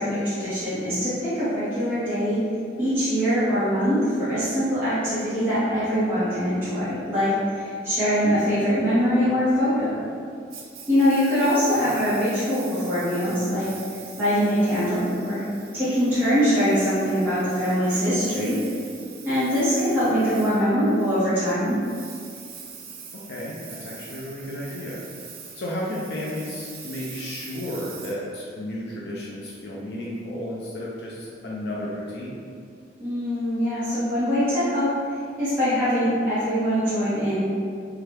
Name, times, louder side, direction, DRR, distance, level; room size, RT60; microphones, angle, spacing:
voice 1, 0.0-2.4 2.8-10.0 10.9-13.7 14.2-15.4 15.7-18.6 19.2-21.8 33.0-34.9 35.4-37.4, equal, 10° right, -16 dB, 1.0 m, -23 dB
Engine, 10.5-29.0, right 6 dB, 50° right, 0.4 m, -44 dB
voice 2, 23.3-25.0 25.6-32.4, left 1 dB, 60° left, -5 dB, 0.4 m, -33 dB
2.8 x 2.3 x 3.3 m, 2.3 s
head